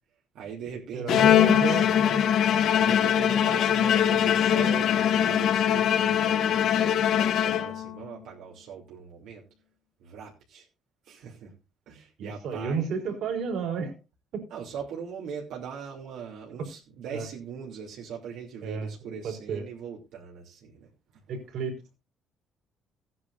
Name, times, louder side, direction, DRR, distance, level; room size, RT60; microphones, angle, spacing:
voice 1, 0.3-1.9 2.8-9.4 10.0-10.6 11.0-11.5 11.9-12.9 14.5-20.9, right 6 dB, 75° right, -2 dB, 3.0 m, -40 dB
voice 2, 0.9-2.2 12.2-14.0 14.3-14.4 16.6-16.7 17.1-17.3 18.6-18.9 19.2-19.6 21.3-21.9, right 5 dB, 55° right, 3 dB, 4.0 m, -32 dB
Bowed string instrument, 1.1-8.0, left 9 dB, 55° left, 1.1 m, -22 dB
17.0 x 10.0 x 2.6 m, 0.28 s
cardioid pair, 175°, 0 cm